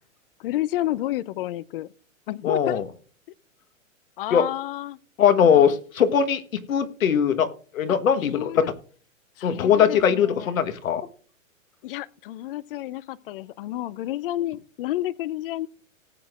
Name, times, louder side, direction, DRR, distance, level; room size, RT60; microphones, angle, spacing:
voice 1, 0.4-1.9 2.3-2.8 4.2-5.0 5.4-5.7 8.2-8.7 9.4-10.5 11.8-15.7, left 14 dB, 45° left, 0.5 m, -30 dB
voice 2, 2.4-2.8 4.3-4.4 5.2-6.4 6.7-7.5 7.7-8.7 9.4-11.1, left 8 dB, 80° left, 1.3 m, -20 dB
18.5 x 7.9 x 2.4 m
hypercardioid pair, 130°, 40 cm